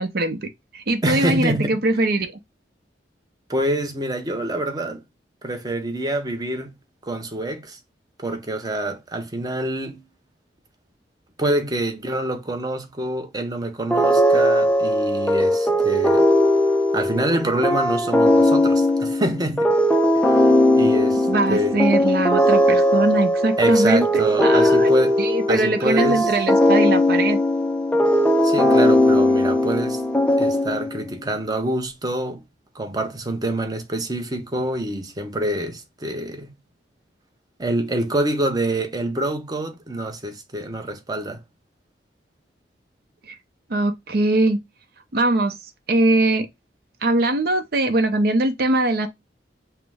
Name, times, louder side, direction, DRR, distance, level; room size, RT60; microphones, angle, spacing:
voice 1, 0.0-2.4 21.3-24.1 24.4-24.9 25.2-27.4 43.3-43.4 43.7-44.6 45.1-45.6 45.9-46.5 47.0-49.1, right 2 dB, 55° right, 0.7 m, -21 dB
voice 2, 1.0-1.8 3.5-5.0 5.4-6.8 7.0-7.8 8.2-10.0 11.4-16.3 16.9-19.7 20.2-21.8 23.6-25.2 25.5-26.3 28.4-30.0 30.4-32.4 32.7-36.5 37.6-41.4, right 1 dB, 20° right, 0.7 m, -26 dB
sound 1, 13.9-31.1, left 1 dB, 5° left, 0.4 m, -18 dB
5.6 x 2.1 x 3.4 m
head